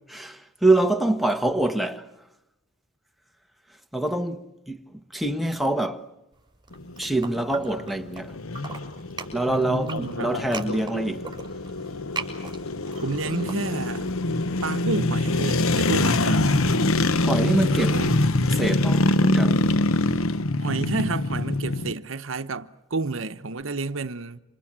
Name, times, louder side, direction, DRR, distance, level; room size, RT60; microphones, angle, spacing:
voice 1, 0.1-2.1 3.9-4.8 5.1-6.0 7.0-8.3 9.3-11.2 17.2-18.0 18.5-19.6, right 2 dB, ahead, 1.5 m, -25 dB
sound 1, 6.6-8.2 8.5-14.1, right 4 dB, 20° right, 6.5 m, -38 dB
sound 2, 6.7-21.9, left 2 dB, 80° left, 1.1 m, -24 dB
voice 2, 9.5-10.4 13.0-14.1 14.6-16.6 17.9-18.1 20.6-24.4, right 3 dB, 65° right, 1.0 m, -30 dB
28.5 x 27.0 x 7.5 m
head